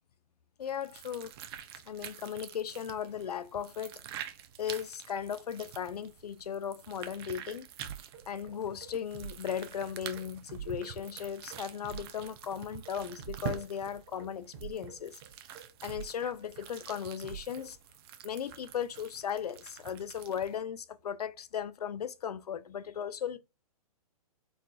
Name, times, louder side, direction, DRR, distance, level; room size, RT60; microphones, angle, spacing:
voice 1, 0.6-1.3 1.9-4.0 4.6-7.7 8.3-15.2 15.8-17.8 18.2-23.4, left 8 dB, 90° left, 0.4 m, -37 dB
sound 1, 0.6-20.6, right 9 dB, 40° right, 0.5 m, -47 dB
sound 2, 7.1-17.7, right 8 dB, 65° right, 1.0 m, -48 dB
4.1 x 2.5 x 2.2 m
hypercardioid pair, 130°, 19 cm